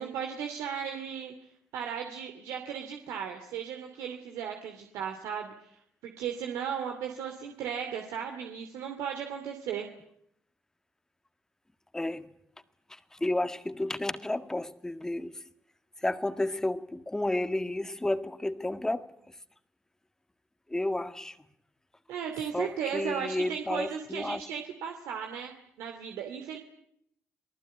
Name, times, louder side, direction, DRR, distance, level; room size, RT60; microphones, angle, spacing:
voice 1, 0.0-1.3 1.7-9.9 22.1-26.6, right 8 dB, 85° right, 2.6 m, -36 dB
voice 2, 11.9-12.3 12.9-15.4 16.0-19.1 20.7-21.4 22.5-24.4, left 1 dB, 10° left, 1.7 m, -31 dB
28.0 x 18.5 x 9.4 m
cardioid pair, 80°, 5 cm